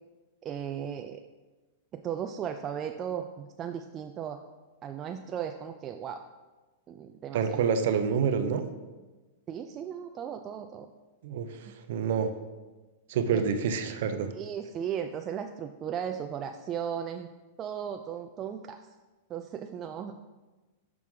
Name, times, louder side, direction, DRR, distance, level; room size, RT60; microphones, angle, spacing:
voice 1, 0.4-1.2 1.9-4.4 4.8-6.2 6.9-7.6 9.5-10.9 13.3-13.5 14.2-17.3 17.6-18.9 19.3-20.2, right 8 dB, 25° right, 6 dB, 0.3 m, -36 dB
voice 2, 7.3-8.6 11.2-12.3 13.1-14.3, right 6 dB, 65° right, 9 dB, 0.6 m, -27 dB
6.0 x 5.9 x 3.7 m, 1.2 s
supercardioid pair, 140°, 0 cm